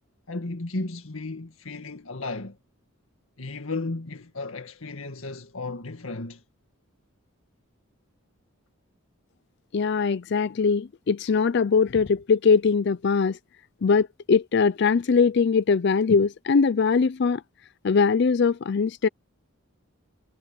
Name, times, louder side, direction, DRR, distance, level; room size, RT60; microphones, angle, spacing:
voice 1, 0.3-2.6 3.4-6.4, left 3 dB, 75° left, 1.9 m, -34 dB
voice 2, 9.7-13.4 13.8-17.4 17.8-19.1, left 5 dB, 55° left, 0.4 m, -21 dB
head